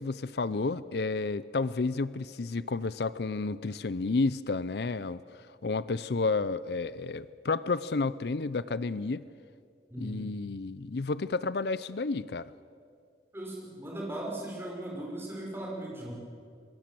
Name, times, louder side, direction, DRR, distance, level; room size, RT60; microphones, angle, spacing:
voice 1, 0.0-9.2 10.0-12.5, left 3 dB, 70° left, 17 dB, 0.6 m, -31 dB
voice 2, 9.9-10.3 13.3-16.1, right 1 dB, 15° right, -2 dB, 5.7 m, -38 dB
26.0 x 22.0 x 7.6 m, 2.3 s
head